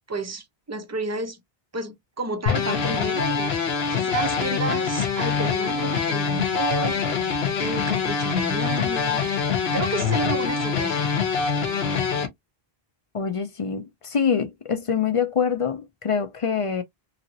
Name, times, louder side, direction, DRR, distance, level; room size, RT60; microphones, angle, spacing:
voice 1, 0.1-1.4 1.7-7.1 7.6-9.3 9.7-11.1, right 3 dB, 20° right, 0.5 m, -31 dB
sound 1, 2.5-12.3, left 6 dB, 85° left, 1.0 m, -24 dB
voice 2, 13.1-16.8, left 6 dB, 50° left, 0.4 m, -25 dB
3.0 x 2.8 x 2.6 m
omnidirectional pair, 1.0 m